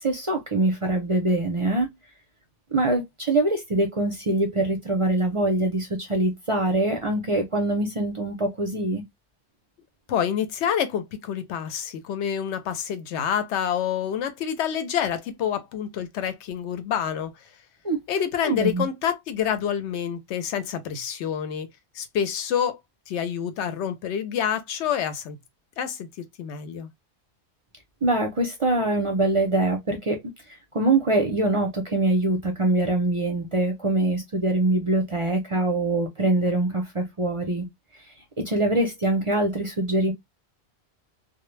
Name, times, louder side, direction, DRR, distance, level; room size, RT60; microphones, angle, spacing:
voice 1, 0.0-1.9 2.7-9.0 17.8-18.0 18.4-18.8 28.0-30.2 30.7-37.7 38.4-40.1, right 2 dB, 40° right, 0.5 m, -23 dB
voice 2, 10.1-17.3 18.1-21.7 21.9-22.8 23.1-25.4 25.8-26.1 26.4-26.9, left 8 dB, 85° left, 0.9 m, -27 dB
2.1 x 2.1 x 3.1 m
omnidirectional pair, 1.1 m